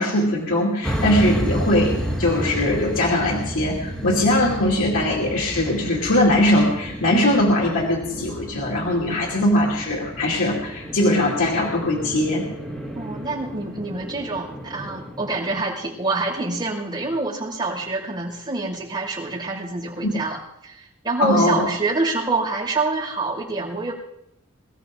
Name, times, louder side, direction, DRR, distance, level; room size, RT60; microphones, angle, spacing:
voice 1, 0.0-12.5 20.0-20.1 21.2-21.7, left 1 dB, 70° left, -3 dB, 2.7 m, -21 dB
sound 1, 0.8-15.6, equal, 5° left, 4.0 m, -31 dB
voice 2, 12.9-23.9, right 3 dB, 20° right, -6 dB, 5.8 m, -26 dB
23.0 x 14.0 x 3.9 m, 0.78 s
head